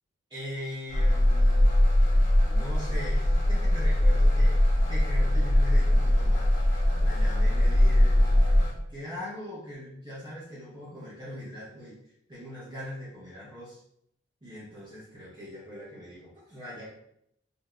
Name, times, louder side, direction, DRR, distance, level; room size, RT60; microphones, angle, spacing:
voice 1, 0.3-1.7 2.5-6.5 7.0-12.0 12.3-13.8 14.4-16.9, left 1 dB, 20° right, -10 dB, 0.7 m, -41 dB
sound 1, 0.9-8.7, left 1 dB, 40° left, 0.8 m, -21 dB
3.4 x 2.6 x 2.3 m, 0.74 s
head